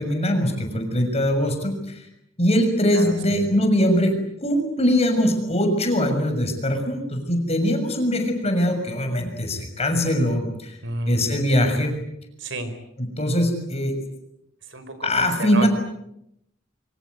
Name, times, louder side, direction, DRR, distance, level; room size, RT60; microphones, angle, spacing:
voice 1, 0.0-2.0 2.4-4.1 4.4-10.7 11.1-12.0 13.2-13.9 15.0-15.7, equal, 35° left, 6 dB, 6.7 m, -22 dB
voice 2, 2.9-3.4 10.8-11.4 12.4-12.8 14.6-15.1 15.4-15.7, right 1 dB, 65° right, 10 dB, 4.8 m, -30 dB
27.5 x 25.5 x 8.1 m, 0.80 s
head